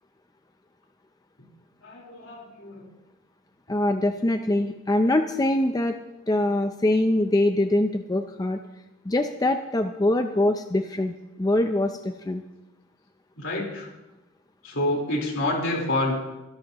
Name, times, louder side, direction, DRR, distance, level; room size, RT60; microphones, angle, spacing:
voice 1, 1.8-2.8 13.4-13.9 14.6-16.2, left 1 dB, 70° left, -2 dB, 3.9 m, -27 dB
voice 2, 3.7-6.0 6.3-8.6 9.0-12.4, left 1 dB, 20° left, 6 dB, 0.5 m, -23 dB
23.5 x 11.5 x 2.9 m, 1.0 s
head